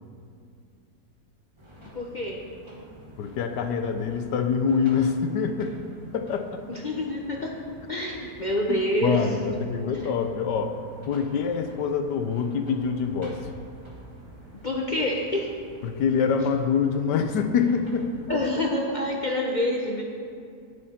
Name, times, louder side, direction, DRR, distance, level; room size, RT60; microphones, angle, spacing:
sound 1, 1.6-18.6, right 1 dB, 15° right, 1.5 m, -48 dB
voice 1, 1.9-2.4 6.7-7.6 7.9-9.6 14.6-15.5 18.3-20.0, left 1 dB, 35° left, -1 dB, 0.8 m, -27 dB
voice 2, 3.2-5.7 6.1-6.6 8.7-10.8 11.1-13.4 15.8-18.4, left 6 dB, 90° left, 7 dB, 1.4 m, -25 dB
18.5 x 6.7 x 4.3 m, 2.4 s
omnidirectional pair, 1.8 m